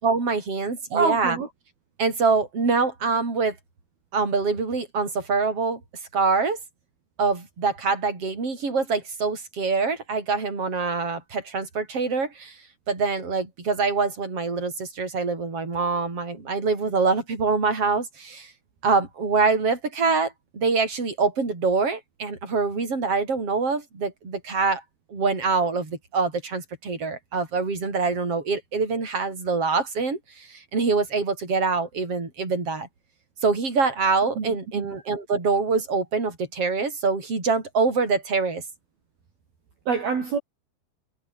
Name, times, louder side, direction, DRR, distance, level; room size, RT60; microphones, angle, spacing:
voice 1, 0.0-1.4 2.0-3.6 4.1-5.8 6.1-6.6 7.2-12.6 12.9-18.5 18.8-24.8 25.1-32.9 33.4-38.6, right 4 dB, 30° right, 7.5 m, -25 dB
voice 2, 0.9-1.5 34.4-35.0 39.9-40.4, right 5 dB, 50° right, 6.1 m, -26 dB
omnidirectional pair, 5.6 m